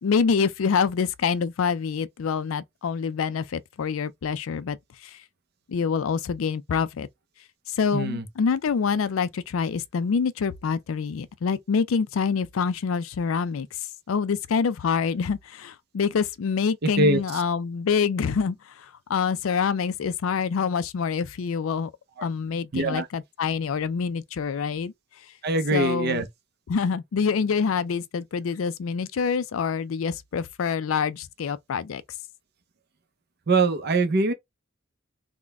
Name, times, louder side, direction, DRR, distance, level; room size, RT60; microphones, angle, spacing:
voice 1, 0.0-5.2 5.7-7.1 7.7-13.8 14.1-21.9 22.2-24.9 25.7-26.3 26.7-32.0, left 6 dB, 85° left, 0.4 m, -26 dB
voice 2, 7.9-8.2 17.0-17.2 22.7-23.1 25.4-26.3 33.5-34.3, right 2 dB, 55° right, 0.6 m, -22 dB
3.7 x 2.2 x 3.4 m
head